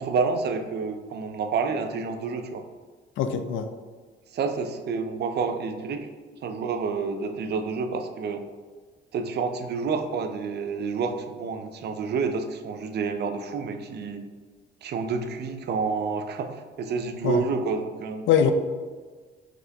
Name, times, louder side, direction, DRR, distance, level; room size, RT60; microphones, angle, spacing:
voice 1, 0.0-2.6 4.3-6.1 6.4-8.5 9.1-14.3 14.8-18.3, right 5 dB, 55° right, 7 dB, 0.4 m, -29 dB
voice 2, 3.2-3.7 17.2-17.4 18.3-18.5, left 8 dB, 75° left, 8 dB, 0.4 m, -22 dB
4.1 x 3.0 x 2.7 m, 1.4 s
cardioid pair, 90°, 20 cm